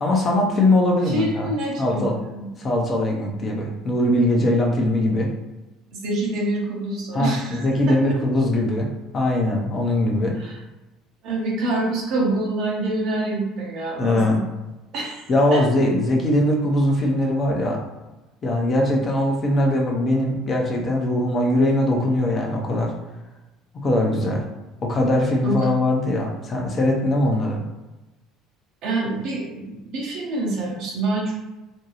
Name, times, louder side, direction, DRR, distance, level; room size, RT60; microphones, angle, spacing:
voice 1, 0.0-1.5 1.8-2.2 2.6-5.3 7.1-8.9 9.1-10.4 14.0-14.4 15.3-17.8 18.4-22.9 23.8-24.4 24.8-27.6, left 1 dB, 35° left, 0 dB, 0.6 m, -21 dB
voice 2, 1.0-2.5 5.9-8.2 10.4-10.6 11.2-14.4 14.9-15.6 25.4-25.7 28.8-31.3, right 2 dB, 55° right, -3 dB, 0.8 m, -26 dB
2.6 x 2.2 x 3.0 m, 1.1 s
figure-of-eight pair, 60°, 0 cm